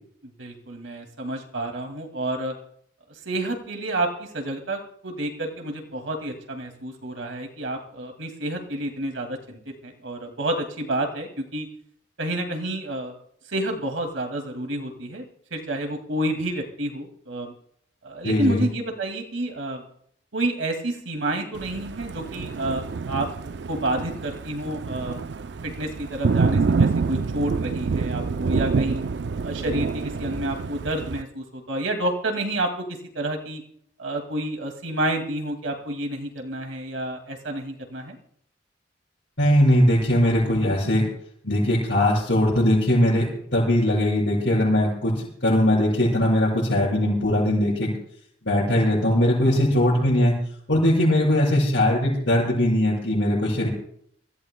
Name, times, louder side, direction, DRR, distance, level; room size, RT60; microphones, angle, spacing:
voice 1, 0.2-2.5 3.3-11.7 12.2-13.1 13.5-17.5 18.0-19.8 20.3-23.3 23.7-25.2 25.6-29.0 29.4-32.9 33.1-33.6 34.0-38.2, right 1 dB, 85° right, 3 dB, 2.3 m, -29 dB
voice 2, 18.2-18.6 39.4-41.1 41.4-43.3 43.5-45.1 45.4-47.9 48.4-50.4 50.7-53.7, left 1 dB, 70° left, -10 dB, 6.7 m, -20 dB
Thunder, 21.6-31.2, right 4 dB, 65° right, 0.4 m, -27 dB
27.5 x 14.5 x 2.2 m, 0.66 s
head